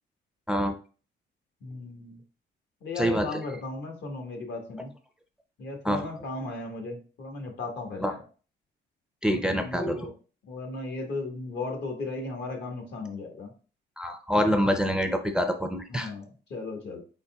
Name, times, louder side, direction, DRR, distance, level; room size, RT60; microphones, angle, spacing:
voice 1, 1.6-2.2 2.8-4.9 5.6-8.2 9.5-10.1 10.5-13.5 15.9-17.0, left 3 dB, 60° left, 3 dB, 1.3 m, -36 dB
voice 2, 3.0-3.4 5.8-6.1 8.0-8.1 9.2-10.0 14.0-16.1, equal, 5° right, 6 dB, 0.4 m, -26 dB
4.2 x 4.0 x 2.2 m, 0.37 s
cardioid pair, 90°, 20 cm